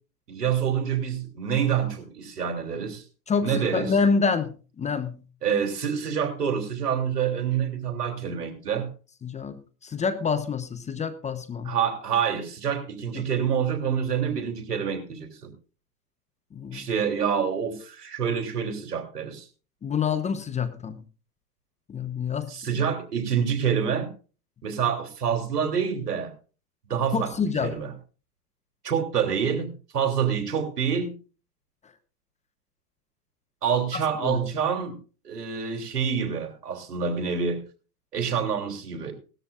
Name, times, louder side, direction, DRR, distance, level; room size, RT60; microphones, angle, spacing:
voice 1, 0.3-3.0 3.4-4.0 5.4-8.9 11.6-15.5 16.7-19.5 22.5-24.1 24.6-26.3 26.9-27.9 28.8-31.1 33.6-34.9 35.2-37.6 38.1-39.1, right 7 dB, 80° right, 4 dB, 3.3 m, -27 dB
voice 2, 3.3-5.2 9.2-9.6 9.8-11.7 13.2-13.3 16.5-16.9 19.8-21.0 21.9-22.5 27.1-27.8 33.9-34.5, left 5 dB, 15° left, 11 dB, 0.9 m, -27 dB
18.5 x 13.0 x 2.5 m, 0.37 s
hypercardioid pair, 105°, 47 cm